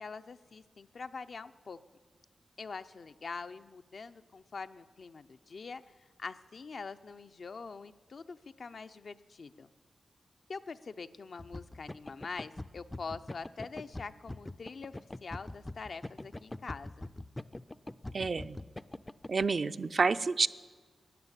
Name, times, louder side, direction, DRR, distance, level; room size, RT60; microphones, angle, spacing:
voice 1, 0.0-1.8 2.6-5.8 6.2-9.7 10.5-17.1, left 4 dB, 65° left, 10 dB, 0.6 m, -44 dB
sound 1, 11.4-19.5, left 1 dB, 20° left, 0.4 m, -43 dB
voice 2, 18.1-18.6 19.3-20.5, right 4 dB, 55° right, 12 dB, 0.5 m, -29 dB
14.0 x 9.5 x 9.9 m, 1.5 s
wide cardioid pair, 80°, 0 cm